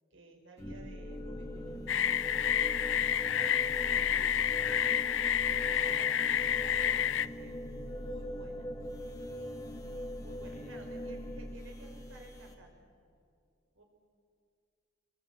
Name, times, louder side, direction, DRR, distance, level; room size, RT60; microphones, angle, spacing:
voice 1, 0.1-1.9 5.5-7.5 7.9-8.7 10.1-12.7 13.7-13.8, right 1 dB, 85° right, 3 dB, 4.9 m, -54 dB
sound 1, 0.6-12.5, equal, 15° left, 2.3 m, -41 dB
sound 2, 1.9-7.3, left 9 dB, 70° left, 0.6 m, -29 dB
voice 2, 3.0-5.0 10.3-10.8, left 1 dB, 40° left, 3 dB, 2.7 m, -54 dB
28.0 x 22.5 x 8.0 m, 2.3 s
head